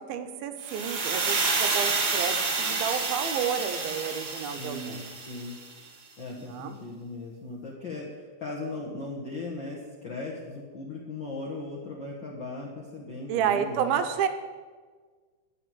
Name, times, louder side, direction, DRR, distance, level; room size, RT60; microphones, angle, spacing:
voice 1, 0.0-5.1 6.4-6.8 13.3-14.3, right 8 dB, 80° right, 8 dB, 2.6 m, -30 dB
sound 1, 0.6-5.7, right 4 dB, 50° right, 1.4 m, -29 dB
voice 2, 4.6-5.6 6.2-14.0, left 2 dB, 70° left, -4 dB, 1.1 m, -38 dB
10.0 x 7.8 x 7.6 m, 1.5 s
omnidirectional pair, 4.3 m